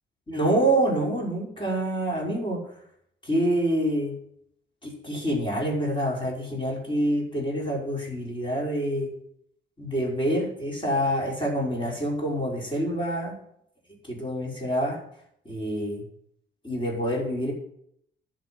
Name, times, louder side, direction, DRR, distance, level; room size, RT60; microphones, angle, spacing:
voice 1, 0.3-2.6 3.2-4.1 4.8-9.1 9.8-13.3 14.1-15.0 15.4-16.0 16.6-17.5, right 1 dB, 25° left, -3 dB, 5.9 m, -26 dB
12.0 x 7.5 x 7.9 m, 0.72 s
cardioid pair, 90°, 20 cm